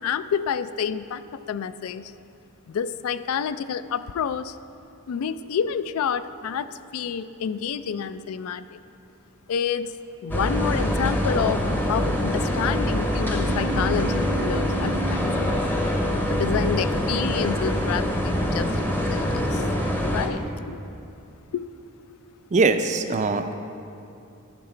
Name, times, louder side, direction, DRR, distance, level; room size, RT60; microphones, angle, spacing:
voice 1, 0.0-2.1 2.7-4.6 5.1-8.8 9.5-9.9 10.2-15.6 16.3-19.7 20.0-20.8 21.5-21.6, left 7 dB, 75° left, 14 dB, 0.3 m, -29 dB
sound 1, 10.3-20.3, equal, 10° left, 0.7 m, -24 dB
voice 2, 22.5-23.5, right 3 dB, 35° right, 9 dB, 0.4 m, -21 dB
13.0 x 5.7 x 4.4 m, 2.7 s
head